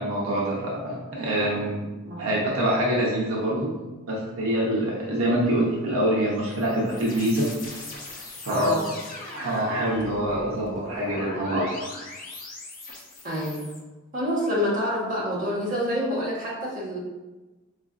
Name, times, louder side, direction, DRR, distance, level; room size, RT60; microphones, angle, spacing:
voice 1, 0.0-1.9 2.2-3.8 4.1-7.5 8.4-8.8 9.3-11.7, right 1 dB, 85° right, -4 dB, 0.7 m, -25 dB
sound 1, 6.2-13.8, left 2 dB, 40° left, 0.6 m, -40 dB
voice 2, 8.5-8.9 13.2-13.7 14.1-17.0, equal, 40° right, -7 dB, 1.1 m, -27 dB
3.9 x 2.5 x 2.4 m, 1.2 s
head